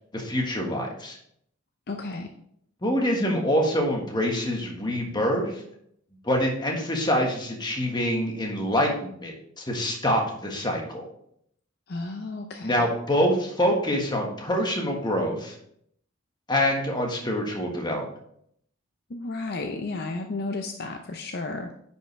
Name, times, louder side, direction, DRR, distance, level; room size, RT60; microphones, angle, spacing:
voice 1, 0.1-1.2 2.8-5.6 6.2-11.0 12.6-15.5 16.5-18.1, equal, 20° left, 1 dB, 1.5 m, -25 dB
voice 2, 1.9-2.3 11.9-12.8 19.1-21.7, left 3 dB, 50° left, 4 dB, 0.6 m, -33 dB
9.7 x 5.5 x 3.3 m, 0.70 s
head